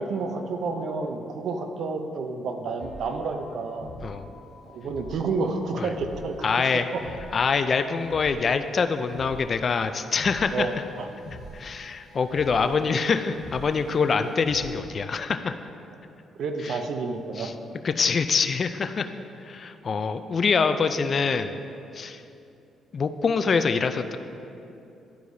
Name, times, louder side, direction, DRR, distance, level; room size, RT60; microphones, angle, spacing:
voice 1, 0.0-3.9 4.7-7.0 10.5-11.1 16.4-17.5, right 4 dB, 65° right, 6 dB, 0.6 m, -30 dB
sound 1, 2.8-14.7, left 1 dB, 85° left, 1.4 m, -45 dB
voice 2, 6.4-6.9 7.3-10.8 11.5-15.5 16.6-16.8 17.4-17.5 17.8-19.1 19.4-21.6 21.9-22.2 22.9-24.2, left 5 dB, 45° left, 9 dB, 0.3 m, -25 dB
11.5 x 4.7 x 2.7 m, 2.7 s
cardioid pair, 90°, 0 cm